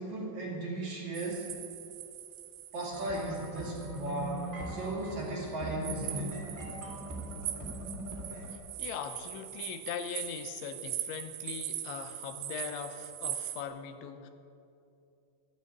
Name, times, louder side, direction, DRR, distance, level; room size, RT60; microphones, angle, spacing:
voice 1, 0.0-1.5 2.7-6.4 8.3-8.4, right 1 dB, 45° right, -4 dB, 3.2 m, -36 dB
sound 1, 1.1-4.9 5.8-13.6, right 12 dB, 85° right, 3.4 m, -41 dB
sound 2, 2.9-8.5, right 1 dB, 5° right, 2.1 m, -41 dB
voice 2, 8.8-14.3, left 8 dB, 85° left, 8 dB, 3.1 m, -40 dB
12.5 x 12.0 x 8.6 m, 2.6 s
omnidirectional pair, 5.3 m